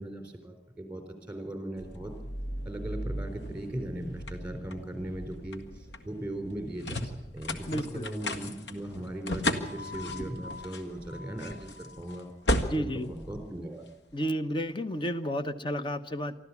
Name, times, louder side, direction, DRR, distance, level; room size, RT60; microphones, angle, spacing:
voice 1, 0.0-2.1 2.6-12.3 12.8-13.9, right 1 dB, 10° right, 6 dB, 3.9 m, -38 dB
sound 1, 1.8-14.1, left 1 dB, 85° left, 1.8 m, -36 dB
voice 2, 7.7-8.1 12.6-13.1 14.1-16.3, equal, 30° left, 10 dB, 1.0 m, -32 dB
24.5 x 13.5 x 8.4 m, 0.89 s
head